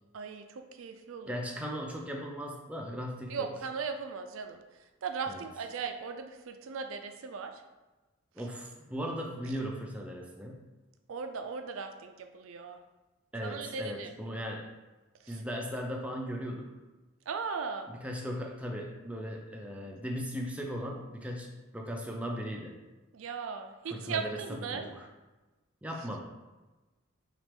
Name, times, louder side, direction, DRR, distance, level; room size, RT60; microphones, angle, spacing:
voice 1, 0.1-1.4 3.3-4.6 5.0-7.6 11.1-12.8 13.4-14.1 15.2-15.4 17.3-17.9 23.1-24.9, right 5 dB, 75° right, 6 dB, 0.4 m, -38 dB
voice 2, 1.3-3.5 5.3-5.4 8.4-10.7 13.3-14.7 15.3-16.8 17.9-22.8 23.9-25.1 25.8-26.2, equal, 5° right, 0 dB, 0.4 m, -38 dB
6.0 x 2.4 x 3.5 m, 1.1 s
head